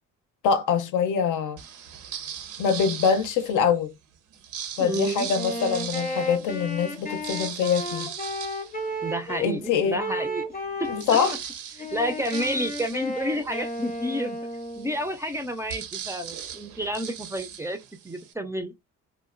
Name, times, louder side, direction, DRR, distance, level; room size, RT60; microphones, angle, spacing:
voice 1, 0.4-1.6 2.6-3.9 4.8-8.1 9.4-10.0 10.9-11.4, left 6 dB, 80° left, 0.6 m, -24 dB
sound 1, 1.6-3.7 4.3-9.5 10.0-10.1 10.3-18.3, right 8 dB, 80° right, 0.6 m, -39 dB
voice 2, 4.8-5.3 9.0-10.4 10.8-10.9 11.8-14.4 14.8-17.8 18.0-18.8, equal, 10° right, 0.3 m, -30 dB
Wind instrument woodwind instrument, 5.3-9.5 10.0-11.4 11.8-15.0, equal, 30° left, 0.6 m, -33 dB
2.9 x 2.1 x 2.4 m
cardioid pair, 90°, 30 cm